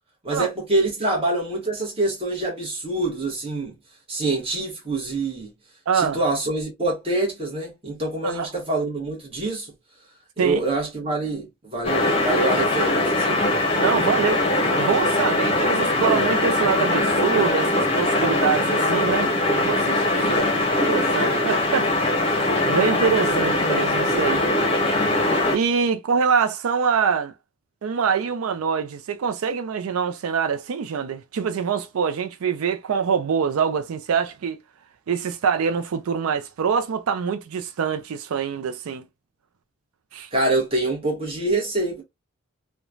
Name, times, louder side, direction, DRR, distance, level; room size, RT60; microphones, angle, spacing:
voice 1, 0.2-3.8 4.1-5.5 5.9-9.7 10.4-13.4 20.3-20.5 40.3-42.0, right 2 dB, 25° right, 1.0 m, -25 dB
voice 2, 5.9-6.2 8.2-8.5 10.4-10.6 13.8-14.4 14.8-19.3 19.6-20.5 20.8-21.9 22.7-24.4 25.5-27.3 27.8-34.6 35.1-39.0 40.1-40.3, right 6 dB, 90° right, 0.4 m, -24 dB
sound 1, 11.8-25.6, left 2 dB, 25° left, 0.7 m, -21 dB
3.0 x 2.1 x 2.4 m
head